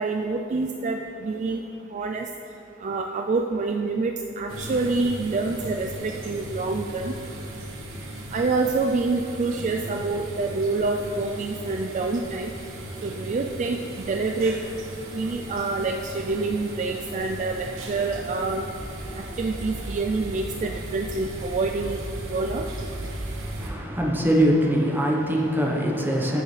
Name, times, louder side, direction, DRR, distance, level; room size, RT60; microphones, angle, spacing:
voice 1, 0.0-1.6 1.9-2.3 2.8-7.1 8.3-12.5 13.0-13.8 14.0-14.6 15.1-18.6 19.2-22.0 22.3-22.6, right 3 dB, 40° right, 3 dB, 0.3 m, -27 dB
sound 1, 4.5-23.7, right 1 dB, 80° right, 1.2 m, -37 dB
voice 2, 23.6-26.4, equal, 10° right, -1 dB, 1.0 m, -22 dB
14.5 x 7.0 x 3.3 m, 3.0 s
head